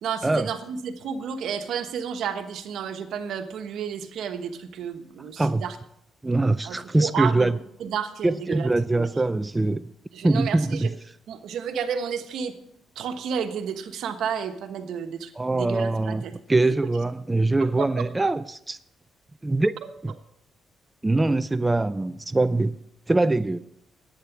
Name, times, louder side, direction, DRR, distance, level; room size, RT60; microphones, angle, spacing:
voice 1, 0.0-5.8 6.6-7.5 7.8-8.7 8.9-9.1 10.1-10.9 11.3-12.5 12.9-16.3 17.8-18.0, right 7 dB, 75° right, 1.2 m, -31 dB
voice 2, 6.2-7.6 8.2-9.9 10.2-10.9 15.4-16.2 16.5-18.8 19.4-19.8 20.0-20.1 21.0-22.8 23.1-23.6, right 2 dB, 15° right, 0.4 m, -23 dB
11.5 x 9.1 x 6.0 m
cardioid pair, 90°, 0 cm